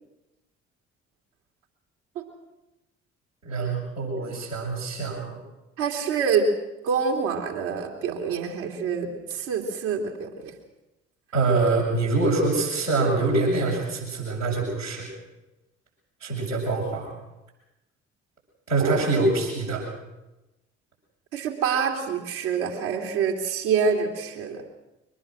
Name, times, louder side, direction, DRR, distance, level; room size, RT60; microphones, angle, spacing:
voice 1, 3.4-5.4 11.3-15.1 16.2-17.1 18.7-19.8, right 3 dB, 85° right, -6 dB, 6.7 m, -25 dB
voice 2, 5.8-6.5 6.8-10.5 18.8-19.1 21.3-24.6, right 6 dB, 65° right, 0 dB, 3.0 m, -26 dB
23.5 x 19.5 x 6.3 m, 1.0 s
figure-of-eight pair, 45°, 36 cm